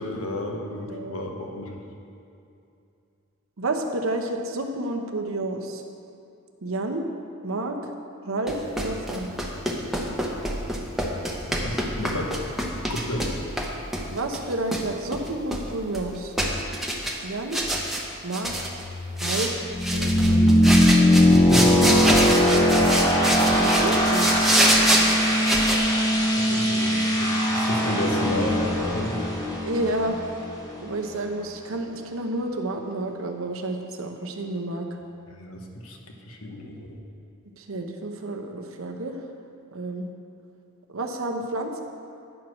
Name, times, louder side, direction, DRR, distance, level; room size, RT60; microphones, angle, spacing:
voice 1, 0.0-1.9 11.4-12.3 12.9-13.3 21.3-22.1 26.3-29.2 35.3-37.0, left 1 dB, 80° left, 1 dB, 1.1 m, -31 dB
voice 2, 0.8-1.3 3.6-5.8 6.6-7.0 7.4-7.9 8.2-9.4 14.1-16.3 17.2-17.6 18.2-18.6 19.2-19.5 19.9-20.5 23.3-24.4 26.5-26.6 29.6-30.2 30.8-34.9 37.6-39.2 39.7-40.1 40.9-41.8, right 2 dB, 70° right, 3 dB, 0.8 m, -30 dB
sound 1, 8.5-13.7 13.9-14.9 15.1-16.1 16.4-17.2 17.5-18.0 18.3-18.8 19.2-19.5 19.8-25.8, right 1 dB, ahead, 0.8 m, -25 dB
sound 2, 18.6-31.3, equal, 15° left, 1.5 m, -21 dB
9.9 x 4.5 x 6.3 m, 2.6 s
head